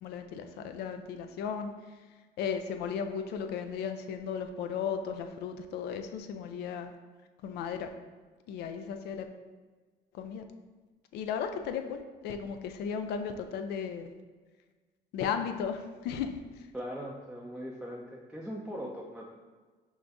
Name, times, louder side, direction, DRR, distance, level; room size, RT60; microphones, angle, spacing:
voice 1, 0.0-1.7 2.4-6.9 7.4-7.9 8.5-9.3 10.1-10.4 11.1-12.0 12.2-14.1 15.1-16.7, left 7 dB, 75° left, 7 dB, 0.4 m, -35 dB
voice 2, 16.7-19.3, equal, 5° right, -3 dB, 0.4 m, -40 dB
5.3 x 2.6 x 3.4 m, 1.4 s
cardioid pair, 110°, 17 cm